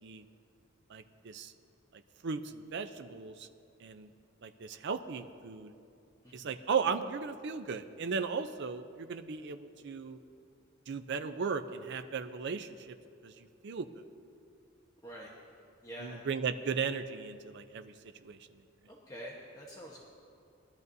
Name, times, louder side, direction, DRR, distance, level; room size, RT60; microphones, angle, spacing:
voice 1, 0.9-1.5 1.9-3.5 3.8-4.1 4.4-5.7 6.3-10.2 10.9-13.0 13.2-13.9 16.0-17.9 18.2-18.4, right 5 dB, 60° right, 9 dB, 0.5 m, -36 dB
voice 2, 15.8-16.2 18.9-20.0, equal, 20° left, -4 dB, 1.1 m, -46 dB
20.0 x 12.0 x 2.7 m, 2.5 s
head